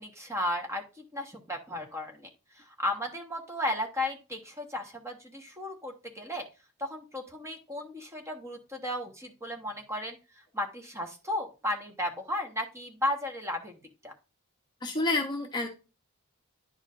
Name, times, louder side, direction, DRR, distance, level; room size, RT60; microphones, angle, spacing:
voice 1, 0.0-2.3 2.5-6.4 6.8-13.8 14.0-14.1, left 1 dB, 15° right, 3 dB, 1.3 m, -34 dB
voice 2, 14.8-15.7, left 2 dB, 20° left, 2 dB, 0.9 m, -29 dB
10.5 x 4.9 x 2.6 m, 0.30 s
head